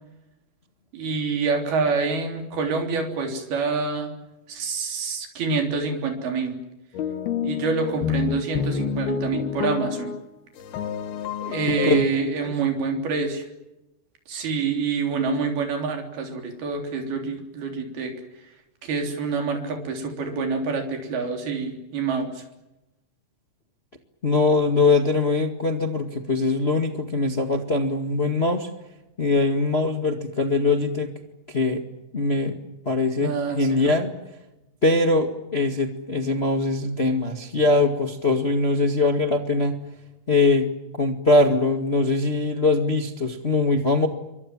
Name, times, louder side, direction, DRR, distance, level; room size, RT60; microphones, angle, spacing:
voice 1, 0.9-4.1 4.5-6.6 7.4-10.1 11.4-13.5 14.3-18.1 18.8-22.4 33.2-34.0, right 4 dB, 90° right, 4 dB, 5.5 m, -27 dB
sound 1, 6.9-10.3 10.6-12.1, left 8 dB, 85° left, 3.6 m, -28 dB
voice 2, 24.2-28.7 29.2-31.1 31.5-31.8 32.1-32.5 32.8-34.1 34.8-39.8 40.3-40.7 41.0-44.1, left 3 dB, 25° left, 5 dB, 1.3 m, -22 dB
28.0 x 24.0 x 7.4 m, 0.94 s
omnidirectional pair, 4.3 m